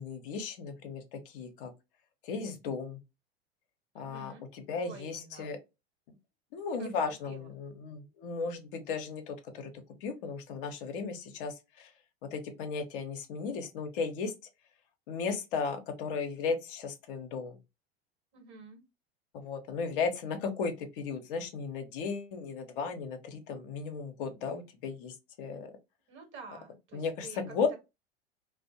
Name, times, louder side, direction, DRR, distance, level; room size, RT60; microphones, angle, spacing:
voice 1, 0.0-1.7 2.2-3.0 3.9-5.6 6.5-9.7 10.0-11.9 12.2-14.3 15.1-17.6 19.3-25.7 26.9-27.7, left 5 dB, 55° left, 0.7 m, -35 dB
voice 2, 3.9-4.4 4.8-5.5 6.8-6.9 7.3-7.5 18.3-18.8 26.1-27.4, right 4 dB, 35° right, 1.1 m, -49 dB
2.4 x 2.0 x 2.6 m
figure-of-eight pair, 85°, 31 cm